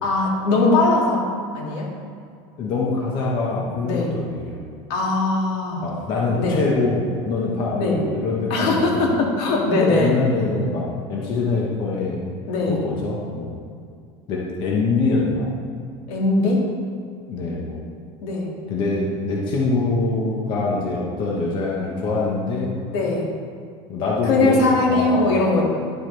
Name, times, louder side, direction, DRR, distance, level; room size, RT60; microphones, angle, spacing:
voice 1, 0.0-1.2 1.5-1.9 3.8-4.1 4.9-5.8 6.4-6.6 7.8-8.0 8.5-10.1 12.5-12.8 16.1-16.7 18.2-18.5 22.9-23.3 24.2-25.6, left 2 dB, 85° left, -2 dB, 2.4 m, -20 dB
voice 2, 2.6-4.6 5.8-9.1 9.9-12.2 12.7-13.5 14.3-15.5 17.3-17.8 18.7-22.8 23.9-25.5, left 3 dB, 40° left, -3 dB, 1.3 m, -24 dB
11.5 x 7.4 x 3.4 m, 2.3 s
cardioid pair, 175°, 13 cm